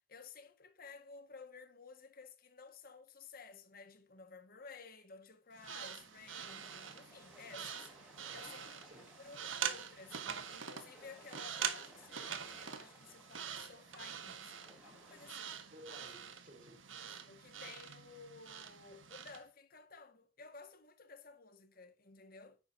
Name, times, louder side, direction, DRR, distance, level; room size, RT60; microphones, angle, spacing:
voice 1, 0.0-8.8 9.2-15.6 16.1-16.2 16.9-22.6, left 4 dB, 50° left, 1.8 m, -55 dB
sound 1, 5.6-19.4, right 8 dB, 85° right, 1.5 m, -45 dB
sound 2, 6.4-15.3, equal, 5° right, 5.6 m, -61 dB
voice 2, 8.3-9.2 15.7-16.9, equal, 45° right, 4.1 m, -56 dB
10.5 x 8.7 x 2.8 m
head